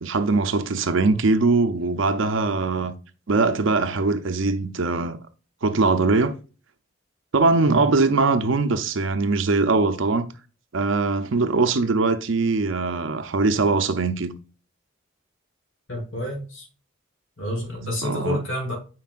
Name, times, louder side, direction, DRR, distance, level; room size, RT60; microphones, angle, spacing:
voice 1, 0.0-2.9 3.3-5.2 5.6-6.4 7.3-10.3 10.7-14.3 18.0-18.4, right 3 dB, 70° right, 0.6 m, -21 dB
voice 2, 15.9-16.7 17.4-18.7, left 1 dB, 80° left, 2.7 m, -29 dB
9.3 x 4.6 x 2.4 m
head